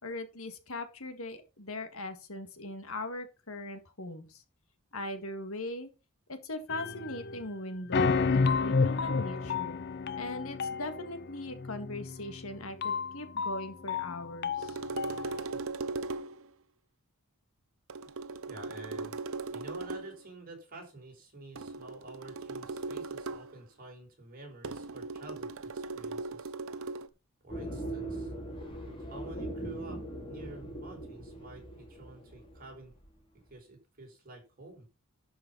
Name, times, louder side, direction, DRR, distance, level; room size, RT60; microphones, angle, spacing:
voice 1, 0.0-4.4 4.9-5.9 6.3-9.8 10.2-14.8, left 1 dB, 65° left, 8 dB, 1.9 m, -40 dB
sound 1, 6.7-7.4 7.9-15.4, left 4 dB, 50° left, 0.6 m, -31 dB
sound 2, 14.6-16.5 17.9-20.2 21.6-23.6 24.6-27.1, right 3 dB, 65° right, 0.8 m, -38 dB
voice 2, 18.5-19.2 19.5-26.5 27.4-28.3 29.1-30.0 30.3-32.9 33.5-34.9, right 2 dB, 40° right, 1 dB, 4.7 m, -49 dB
sound 3, 27.5-33.1, right 1 dB, 25° left, 3.0 m, -40 dB
11.5 x 5.6 x 5.6 m, 0.29 s
head